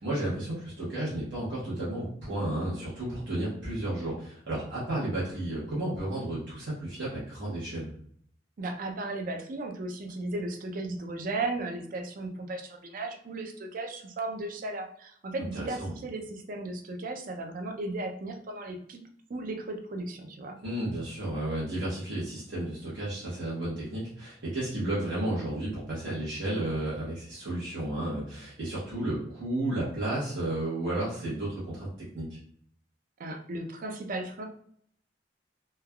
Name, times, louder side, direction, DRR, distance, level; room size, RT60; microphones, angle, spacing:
voice 1, 0.0-7.9 15.5-15.9 20.6-31.9 32.1-32.4, right 1 dB, 75° right, -8 dB, 0.9 m, -32 dB
voice 2, 8.6-19.0 19.3-20.6 33.2-34.5, right 2 dB, 50° right, 4 dB, 0.4 m, -35 dB
3.2 x 2.2 x 2.2 m, 0.63 s
head